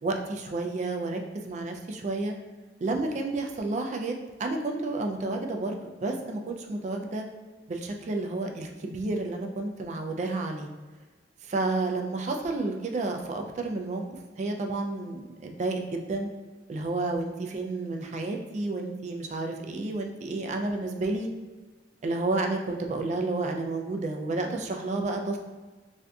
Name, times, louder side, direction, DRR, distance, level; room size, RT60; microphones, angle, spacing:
voice 1, 0.0-2.3 2.8-7.2 7.7-10.7 11.4-14.0 14.4-16.3 16.7-21.3 22.0-25.4, right 2 dB, 40° right, 3 dB, 0.3 m, -31 dB
3.5 x 2.6 x 2.2 m, 1.3 s
head